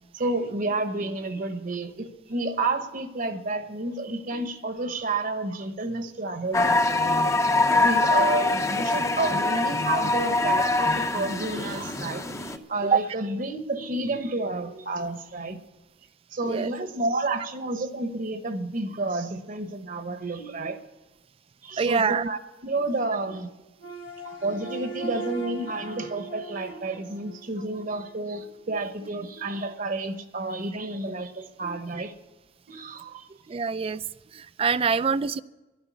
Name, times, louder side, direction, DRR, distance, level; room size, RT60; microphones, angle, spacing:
voice 1, 0.1-7.2 7.8-15.6 16.3-20.8 21.6-23.5 23.8-23.9 24.2-32.1 32.7-33.3 34.9-35.0, right 2 dB, 50° right, 9 dB, 1.1 m, -30 dB
sound 1, 6.5-12.6, left 2 dB, 15° left, 0.7 m, -24 dB
voice 2, 21.8-22.3 33.5-34.0 34.3-35.4, right 5 dB, 30° right, 17 dB, 0.4 m, -25 dB
sound 2, 23.8-28.1, right 3 dB, 90° left, 1.6 m, -39 dB
11.5 x 11.5 x 8.4 m, 1.1 s
head